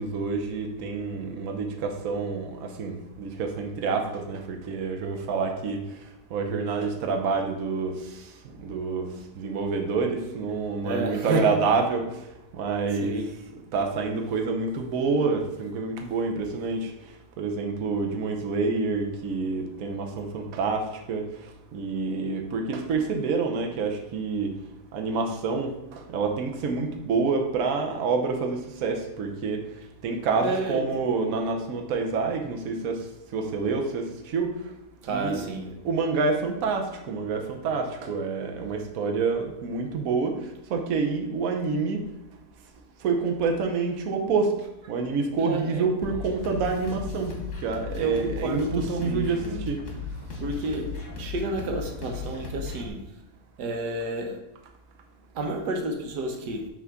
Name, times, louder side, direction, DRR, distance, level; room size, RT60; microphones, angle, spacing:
voice 1, 0.0-5.8 6.3-8.3 8.6-12.3 12.5-13.2 13.7-16.9 17.4-24.5 24.9-29.6 30.0-33.0 33.3-34.5 35.1-35.5 35.8-40.4 40.7-42.0 43.0-49.8, right 4 dB, 65° right, 3 dB, 1.2 m, -28 dB
voice 2, 10.8-11.5 13.0-13.2 30.4-30.8 35.0-35.7 45.4-45.9 47.9-49.7 50.4-53.0 53.6-54.4 55.3-56.7, right 2 dB, 90° right, 3 dB, 1.6 m, -30 dB
sound 1, 46.0-52.9, left 4 dB, 30° left, 1.3 m, -36 dB
6.0 x 3.6 x 5.9 m, 0.90 s
omnidirectional pair, 1.7 m